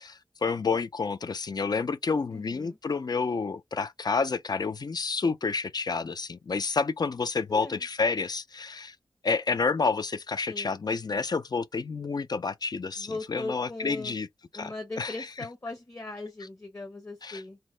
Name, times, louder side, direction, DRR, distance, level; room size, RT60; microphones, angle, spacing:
voice 1, 0.0-9.0 9.2-14.3 14.5-15.1 17.2-17.4, left 4 dB, 50° left, 0.4 m, -29 dB
voice 2, 2.3-2.8 7.5-7.9 10.5-10.8 13.0-14.2 14.5-17.6, left 2 dB, 30° left, 0.9 m, -39 dB
2.8 x 2.1 x 3.1 m
wide cardioid pair, 70°, 9 cm